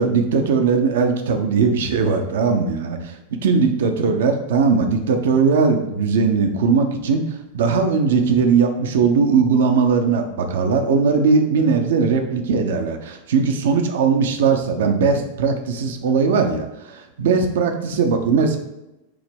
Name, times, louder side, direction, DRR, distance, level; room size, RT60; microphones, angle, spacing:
voice 1, 0.0-7.2 7.5-18.6, right 5 dB, 60° right, 5 dB, 0.7 m, -19 dB
7.0 x 2.9 x 5.2 m, 0.95 s
figure-of-eight pair, 90°, 0 cm